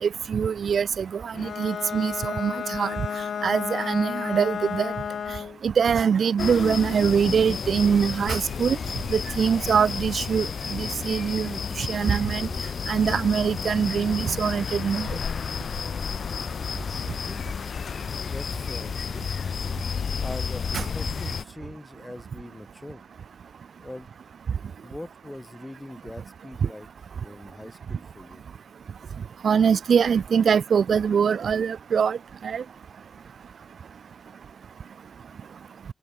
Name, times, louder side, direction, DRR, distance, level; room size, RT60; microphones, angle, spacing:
voice 1, 0.0-2.9 3.4-4.9 5.6-8.8 9.1-12.5 12.9-15.1 20.7-20.8 29.4-32.2 32.4-32.6, right 7 dB, 75° right, 3.6 m, -23 dB
Bowed string instrument, 1.3-5.6, left 7 dB, 85° left, 3.0 m, -32 dB
sound 1, 6.4-21.4, left 6 dB, 65° left, 2.0 m, -31 dB
voice 2, 17.2-17.6 18.2-19.3 20.2-23.0 23.8-24.1 24.8-26.9 27.2-28.4, left 1 dB, 10° left, 7.1 m, -42 dB
wide cardioid pair, 130°, 0 cm